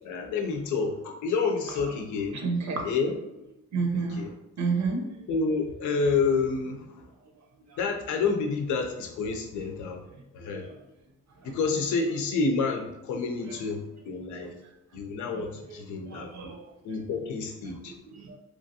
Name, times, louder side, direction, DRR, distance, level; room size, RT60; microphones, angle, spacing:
voice 1, 0.0-2.4 2.8-3.1 3.9-4.3 5.3-7.0 7.8-10.0 10.3-10.6 11.4-14.5 14.9-16.5 16.8-17.9, left 4 dB, 75° left, 4 dB, 0.6 m, -29 dB
voice 2, 2.3-2.8 3.7-4.2 4.6-5.1 10.1-10.2 10.5-10.7 13.5-13.6 15.7-15.8 16.1-16.7 18.1-18.4, right 4 dB, 65° right, 1 dB, 0.8 m, -30 dB
3.0 x 2.3 x 2.7 m, 0.89 s
cardioid pair, 90°, 30 cm